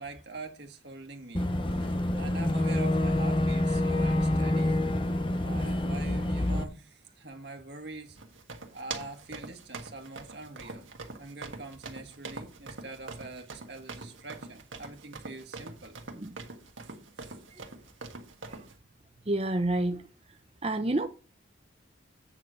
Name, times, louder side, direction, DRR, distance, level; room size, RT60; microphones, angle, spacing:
voice 1, 0.0-4.9 5.4-8.2 8.7-10.9 11.2-16.0 16.8-17.4, right 3 dB, 55° right, 1.8 m, -44 dB
Boat Water vehicle / Engine, 1.3-6.6, left 1 dB, 25° left, 0.8 m, -27 dB
sound 1, 8.2-18.7, right 3 dB, 85° right, 1.5 m, -43 dB
voice 2, 19.3-20.0 20.6-21.1, right 2 dB, 30° right, 0.7 m, -28 dB
8.9 x 4.7 x 6.3 m
head